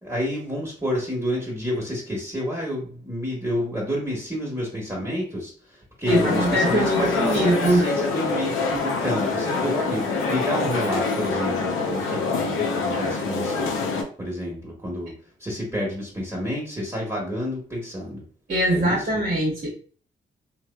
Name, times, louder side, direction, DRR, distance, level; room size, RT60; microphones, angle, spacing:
voice 1, 0.0-13.7 14.2-15.1 15.4-18.2 18.7-19.2, equal, 15° right, -3 dB, 1.2 m, -29 dB
sound 1, 6.1-14.0, left 4 dB, 75° left, 0.6 m, -25 dB
voice 2, 6.1-7.9 18.5-19.7, right 1 dB, 40° right, -3 dB, 1.0 m, -22 dB
3.1 x 2.1 x 2.2 m, 0.42 s
supercardioid pair, 45°, 21 cm